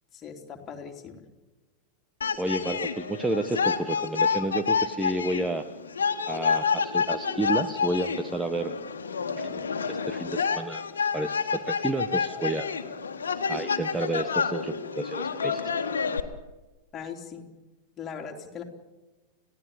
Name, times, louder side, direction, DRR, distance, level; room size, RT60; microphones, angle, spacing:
voice 1, 0.1-1.2 16.9-17.4 18.0-18.6, left 7 dB, 25° left, 2 dB, 3.7 m, -39 dB
sound 1, 2.2-16.2, left 6 dB, 70° left, 1.8 m, -29 dB
voice 2, 2.4-5.7 6.3-8.8 9.4-9.6 9.9-10.8 11.1-12.7 13.5-15.7, right 2 dB, 10° right, 8 dB, 1.1 m, -30 dB
30.0 x 16.0 x 7.1 m, 1.2 s
figure-of-eight pair, 90°, 0 cm